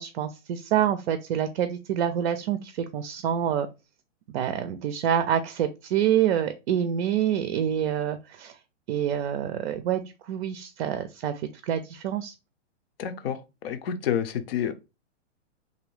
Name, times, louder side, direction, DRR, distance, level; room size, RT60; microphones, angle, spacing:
voice 1, 0.0-3.7 4.3-8.5 8.9-12.3, right 10 dB, 55° right, 0.5 m, -27 dB
voice 2, 13.0-13.4 13.6-14.7, left 9 dB, 55° left, 0.6 m, -28 dB
2.7 x 2.5 x 3.2 m
hypercardioid pair, 130°, 36 cm